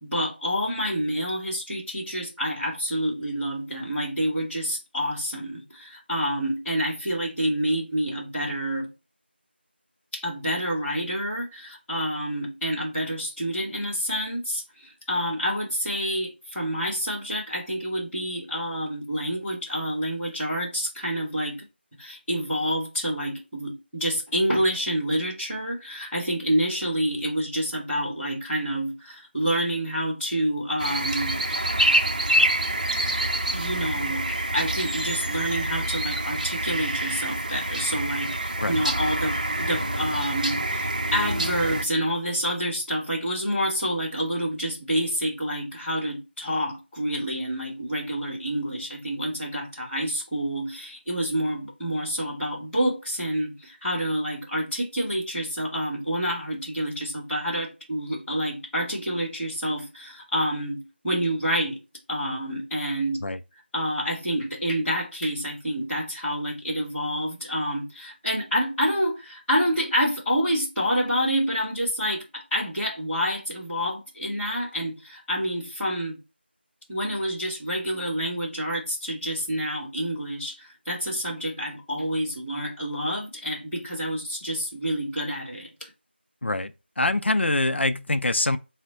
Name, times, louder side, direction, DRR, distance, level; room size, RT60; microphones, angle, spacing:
voice 1, 0.0-8.9 10.1-21.6 22.0-31.7 33.5-61.8 62.1-63.2 63.7-76.2 76.9-85.9, equal, ahead, 0.6 m, -28 dB
sound 1, 30.8-41.8, right 1 dB, 40° right, 0.6 m, -26 dB
voice 2, 86.4-88.6, left 2 dB, 75° left, 0.4 m, -24 dB
4.3 x 2.1 x 4.0 m
figure-of-eight pair, 175°, 6 cm